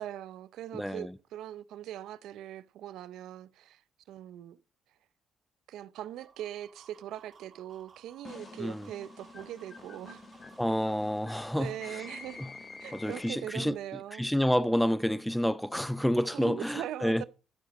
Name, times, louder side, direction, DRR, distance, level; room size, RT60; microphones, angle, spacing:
voice 1, 0.0-3.8 4.1-4.6 5.7-10.2 11.6-12.4 12.8-14.3 16.3-17.2, right 12 dB, 80° right, 0.6 m, -41 dB
voice 2, 0.7-1.1 8.6-8.9 10.6-11.7 12.4-12.5 12.9-13.7 14.2-17.2, equal, ahead, 0.5 m, -29 dB
sound 1, 6.0-12.5, right 5 dB, 35° right, 1.8 m, -59 dB
sound 2, 8.3-13.7, left 3 dB, 30° left, 1.5 m, -48 dB
12.5 x 10.0 x 4.1 m
cardioid pair, 125°, 0 cm